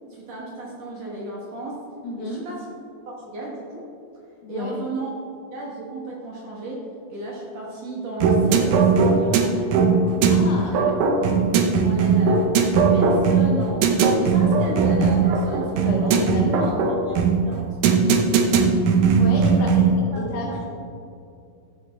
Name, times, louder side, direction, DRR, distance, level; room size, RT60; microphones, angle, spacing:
voice 1, 0.1-1.8 2.2-2.7 3.1-3.9 4.5-5.2 5.5-9.8 10.4-11.0 11.5-12.5 12.9-13.9 14.2-16.3 16.9-17.2 17.4-17.6 19.4-19.7 20.1-20.7, right 2 dB, 60° right, -3 dB, 1.9 m, -34 dB
voice 2, 2.0-2.4 4.4-4.8 10.3-11.0 15.9-16.9 19.2-19.9 20.2-20.7, left 2 dB, 85° left, -2 dB, 3.1 m, -30 dB
sound 1, 8.2-20.0, right 5 dB, 75° right, 1.9 m, -19 dB
14.5 x 8.1 x 3.5 m, 2.5 s
omnidirectional pair, 4.5 m